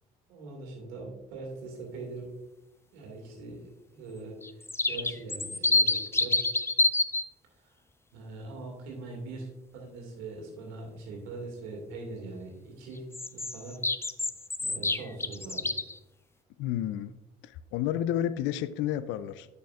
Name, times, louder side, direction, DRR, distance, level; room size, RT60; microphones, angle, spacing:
voice 1, 0.3-2.3 2.9-6.4 7.6-7.7 8.1-13.8 14.6-15.8, right 3 dB, 75° right, 0 dB, 2.1 m, -42 dB
sound 1, 4.4-7.2 13.1-16.0, left 2 dB, 10° left, 0.5 m, -27 dB
voice 2, 16.6-17.1 17.4-19.5, left 11 dB, 65° left, 15 dB, 0.4 m, -31 dB
9.3 x 6.7 x 2.4 m, 0.94 s
hypercardioid pair, 50°, 21 cm